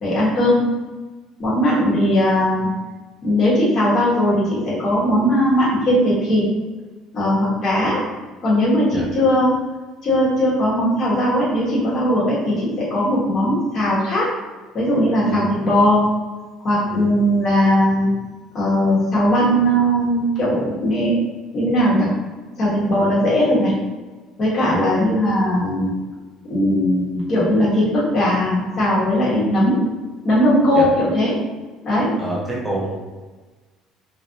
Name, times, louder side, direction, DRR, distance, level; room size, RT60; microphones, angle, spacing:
voice 1, 0.0-0.6 1.4-2.7 3.2-6.4 7.1-8.0 8.4-9.5 10.0-14.3 14.7-16.0 16.6-18.1 18.5-21.2 21.5-22.1 22.6-23.7 24.4-25.9 26.5-29.8 30.2-31.4 31.8-32.1, equal, 35° left, -8 dB, 1.3 m, -18 dB
voice 2, 32.2-33.0, right 1 dB, 5° right, -6 dB, 0.9 m, -27 dB
3.1 x 2.5 x 2.8 m, 1.3 s
cardioid pair, 150°, 0 cm